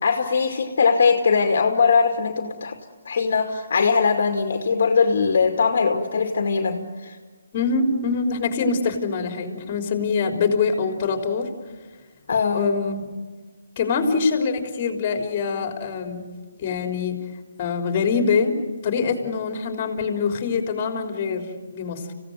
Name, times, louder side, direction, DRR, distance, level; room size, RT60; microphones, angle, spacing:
voice 1, 0.0-2.8 3.1-7.1 12.3-12.7, left 5 dB, 60° left, 4 dB, 2.3 m, -21 dB
voice 2, 7.5-11.5 12.5-13.1 13.8-16.2 16.6-17.2 17.6-18.6 18.8-22.1, left 5 dB, 30° left, 4 dB, 3.5 m, -24 dB
28.0 x 17.0 x 9.3 m, 1.4 s
hypercardioid pair, 160°, 0 cm